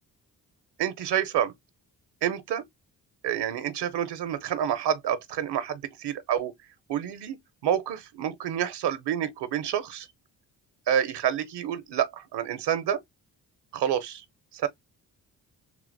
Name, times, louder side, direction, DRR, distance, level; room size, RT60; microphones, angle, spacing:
voice 1, 0.8-1.5 2.2-2.6 3.2-6.5 6.9-7.4 7.6-10.1 10.9-13.0 13.7-14.2 14.5-14.7, right 10 dB, 65° right, 0.6 m, -28 dB
3.4 x 2.9 x 2.5 m
supercardioid pair, 45°, 43 cm